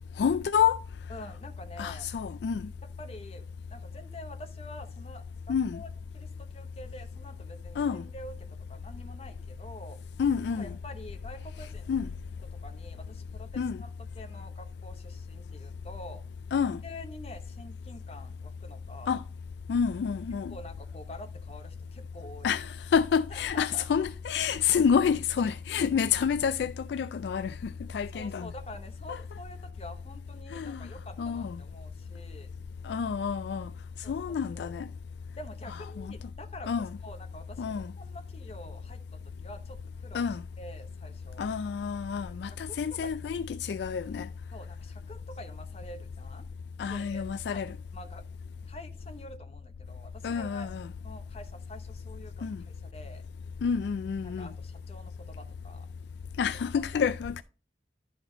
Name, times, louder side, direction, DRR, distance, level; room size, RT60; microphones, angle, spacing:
voice 1, 0.2-0.8 1.8-2.7 5.5-5.8 7.8-8.1 10.2-10.8 11.6-12.1 13.6-13.8 16.5-16.8 19.1-19.2 19.7-20.6 22.4-28.5 29.1-29.2 30.5-30.9 31.2-31.6 32.8-33.7 34.1-34.9 35.7-36.1 36.7-37.0 37.6-37.9 40.1-40.4 41.4-44.3 46.8-47.8 50.2-50.9 52.4-52.6 53.6-54.5 56.4-57.4, left 7 dB, 70° left, 0.3 m, -29 dB
voice 2, 1.1-2.1 3.0-3.4 3.7-5.2 5.7-8.3 8.7-10.0 10.5-11.9 12.6-16.2 16.8-19.2 20.5-22.5 23.3-23.9 24.7-24.8 28.1-32.5 34.0-34.8 35.4-36.7 37.0-40.3 40.6-41.4 42.7-43.1 44.5-46.5 46.9-47.2 47.5-47.6 47.9-48.2 48.7-50.7 51.0-53.2 54.2-55.9 56.7-57.1, left 1 dB, 35° left, 0.9 m, -47 dB
11.5 x 4.3 x 3.9 m
head